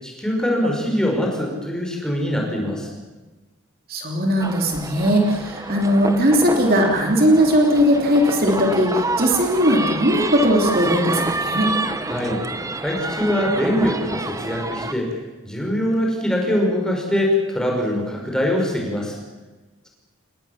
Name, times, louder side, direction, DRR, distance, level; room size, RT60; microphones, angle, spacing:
voice 1, 0.0-2.9 12.1-12.4 12.8-15.1 15.4-19.2, left 1 dB, 5° left, 0 dB, 5.9 m, -23 dB
voice 2, 3.9-11.7, equal, 45° right, 1 dB, 3.3 m, -18 dB
sound 1, 4.4-14.9, right 2 dB, 15° right, 1.1 m, -28 dB
28.5 x 21.0 x 7.4 m, 1.2 s
head